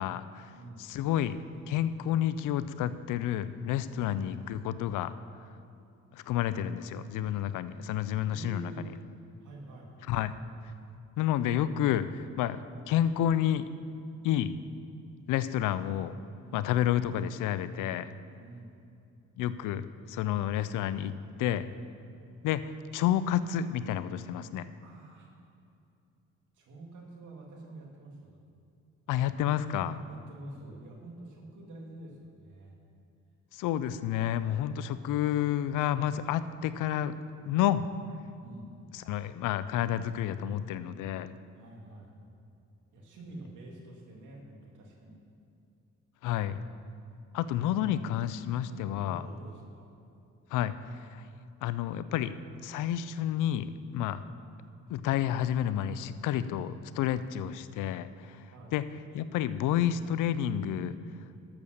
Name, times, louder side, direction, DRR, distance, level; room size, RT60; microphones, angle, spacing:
voice 1, 0.0-0.5 0.8-1.4 1.7-5.1 6.1-8.9 10.1-10.3 11.2-12.6 12.9-13.7 14.2-14.5 15.3-16.1 16.5-18.1 19.4-21.1 21.4-21.7 22.4-22.6 22.9-24.7 29.1-30.0 33.5-37.2 37.4-37.8 38.9-41.3 46.2-46.6 47.3-49.2 50.5-50.7 51.1-51.2 51.6-52.3 52.6-54.2 54.9-58.4 58.7-58.8 59.1-60.9, left 11 dB, 90° left, 14 dB, 0.5 m, -30 dB
voice 2, 0.5-0.9 3.9-4.3 8.3-8.9 9.4-10.0 16.4-16.7 18.4-18.7 24.8-25.3 26.5-28.4 30.0-32.7 34.7-35.1 38.4-38.7 41.5-42.2 42.9-45.2 47.7-48.2 48.7-49.9 58.5-58.7, right 2 dB, 80° right, 0 dB, 2.4 m, -47 dB
12.5 x 7.1 x 6.6 m, 2.6 s
cardioid pair, 90°, 30 cm